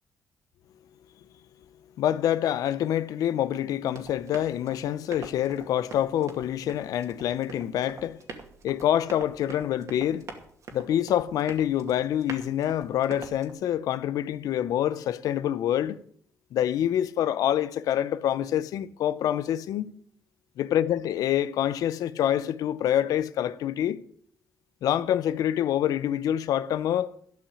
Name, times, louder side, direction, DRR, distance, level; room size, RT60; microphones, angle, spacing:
voice 1, 2.0-8.2 8.6-10.2 10.7-16.0 16.5-19.9 20.6-24.0 24.8-27.1, left 11 dB, 80° left, 0.7 m, -26 dB
Run, 3.9-13.5, right 4 dB, 60° right, 2.3 m, -45 dB
13.0 x 5.9 x 9.5 m
cardioid pair, 90°, 6 cm